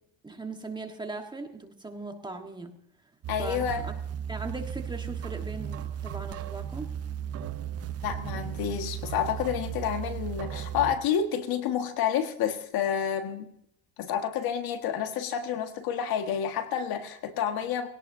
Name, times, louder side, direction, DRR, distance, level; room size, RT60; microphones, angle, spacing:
voice 1, 0.2-2.7 3.4-3.9 4.3-6.9, right 3 dB, 10° right, 4 dB, 1.4 m, -39 dB
sound 1, 3.2-11.0, right 9 dB, 35° right, 0.8 m, -35 dB
voice 2, 3.3-3.8 8.0-13.5 14.0-17.9, left 8 dB, 55° left, 7 dB, 1.7 m, -29 dB
21.0 x 17.5 x 2.7 m, 0.72 s
cardioid pair, 140°, 42 cm